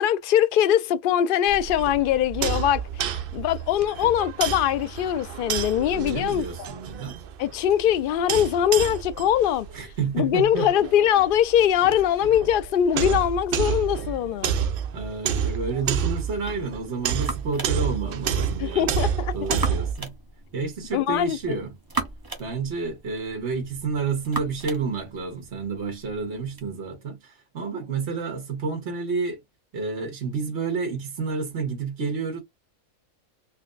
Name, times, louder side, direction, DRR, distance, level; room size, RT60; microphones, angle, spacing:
voice 1, 0.0-6.7 7.4-9.7 10.1-14.6 18.6-19.6 20.9-21.6, left 10 dB, 75° left, 0.4 m, -22 dB
sound 1, 1.5-19.9, right 8 dB, 70° right, 0.5 m, -30 dB
voice 2, 5.9-7.2 9.7-10.7 14.9-19.0 19.3-20.1 20.5-21.7 22.4-29.4 29.7-32.4, right 4 dB, 55° right, 1.6 m, -30 dB
sound 2, 16.6-26.7, right 2 dB, 20° right, 0.8 m, -38 dB
4.3 x 2.1 x 2.5 m
omnidirectional pair, 1.5 m